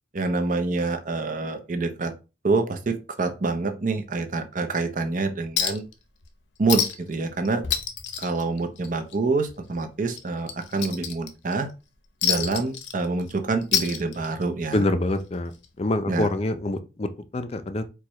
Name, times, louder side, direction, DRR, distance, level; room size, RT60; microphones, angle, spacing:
voice 1, 0.1-2.1 2.4-5.8 6.6-7.6 8.2-11.7 12.2-14.8 16.1-16.3, right 3 dB, 45° right, 0.7 m, -26 dB
Chink clink, 5.6-5.9 6.2-6.3 6.7-7.2 7.5-9.2 9.5-9.7 10.1-11.5 12.2-13.3 13.6-14.5 15.6-15.7, left 8 dB, 85° left, 0.7 m, -27 dB
voice 2, 14.7-15.5 15.8-17.8, left 1 dB, 35° left, 0.5 m, -26 dB
4.7 x 2.3 x 4.1 m
head